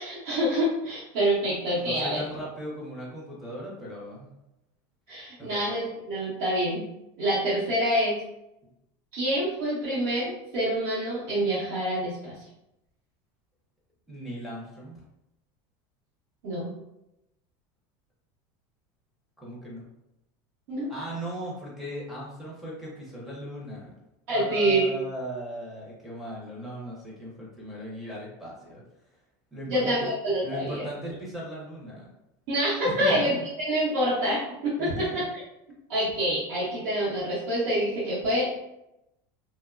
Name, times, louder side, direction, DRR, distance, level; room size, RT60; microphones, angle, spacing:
voice 1, 0.0-2.2 5.1-6.8 7.2-8.2 9.1-12.3 16.4-16.7 20.7-20.9 24.3-24.9 29.7-30.8 32.5-33.3 33.7-35.2 35.9-38.6, right 1 dB, 55° right, -10 dB, 0.9 m, -26 dB
voice 2, 1.8-4.3 5.4-5.6 14.1-15.0 19.4-19.8 20.9-23.9 24.3-28.8 29.5-30.1 30.4-32.1 32.8-33.5 34.8-35.2, equal, ahead, -6 dB, 0.5 m, -38 dB
2.9 x 2.1 x 2.3 m, 0.88 s
cardioid pair, 180°, 12 cm